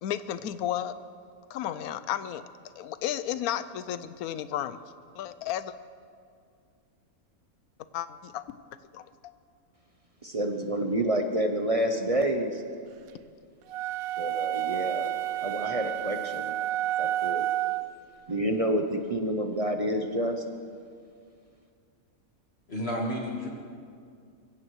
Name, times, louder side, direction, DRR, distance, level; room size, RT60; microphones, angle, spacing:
voice 1, 0.0-0.9 1.5-2.4 2.8-4.8 5.1-5.7 7.9-8.4 8.9-9.0, left 11 dB, 85° left, 13 dB, 1.1 m, -32 dB
voice 2, 10.2-12.6 14.2-15.1 15.4-16.5 17.0-17.5 18.3-20.4, right 1 dB, 30° right, 5 dB, 0.7 m, -28 dB
sound 1, 13.7-18.0, right 13 dB, 80° right, 1.0 m, -30 dB
voice 3, 22.7-23.5, equal, 45° left, -1 dB, 1.8 m, -31 dB
22.5 x 16.0 x 3.2 m, 2.3 s
omnidirectional pair, 1.5 m